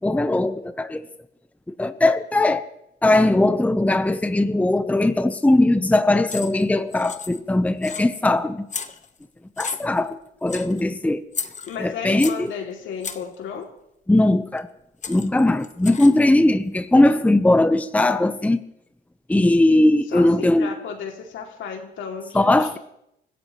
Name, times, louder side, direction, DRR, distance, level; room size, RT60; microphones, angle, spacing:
voice 1, 0.0-1.0 1.7-2.6 3.0-8.6 9.6-10.2 10.4-11.2 11.8-12.5 14.1-14.7 15.1-18.6 19.3-20.7 22.3-22.8, left 1 dB, 5° left, 10 dB, 0.8 m, -19 dB
sound 1, 6.3-6.7 6.9-7.5 7.8-8.3 8.7-9.2 9.6-10.1 10.5-10.8 11.3-12.5 13.0-13.4 14.6-14.7 15.0-16.3, left 6 dB, 35° left, 1.2 m, -34 dB
voice 2, 11.6-13.7 20.1-22.8, left 6 dB, 75° left, 2 dB, 2.7 m, -33 dB
25.5 x 15.5 x 3.1 m, 0.80 s
cardioid pair, 90°, 20 cm